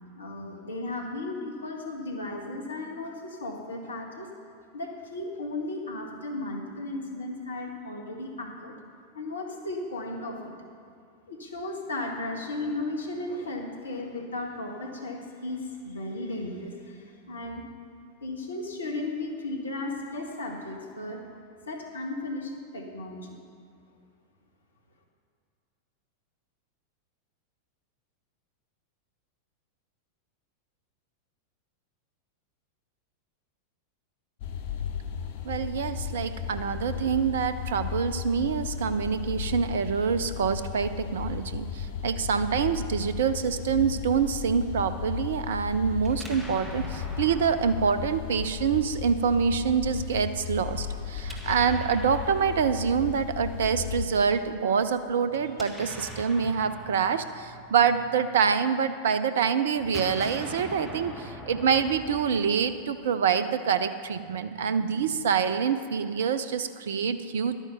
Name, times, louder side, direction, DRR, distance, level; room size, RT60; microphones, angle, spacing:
voice 1, 0.1-4.3 4.7-8.8 9.1-10.5 11.3-17.6 18.2-21.2 21.7-23.4, left 2 dB, 70° left, 1 dB, 1.6 m, -35 dB
sound 1, 34.4-54.1, left 7 dB, 50° left, 0.9 m, -35 dB
voice 2, 35.4-67.6, right 6 dB, 60° right, 12 dB, 0.4 m, -26 dB
Explosion, 46.0-49.1 51.1-53.4 55.3-58.7 59.7-63.1, equal, ahead, 1.7 m, -43 dB
11.5 x 9.0 x 5.8 m, 2.4 s
figure-of-eight pair, 90°, 0 cm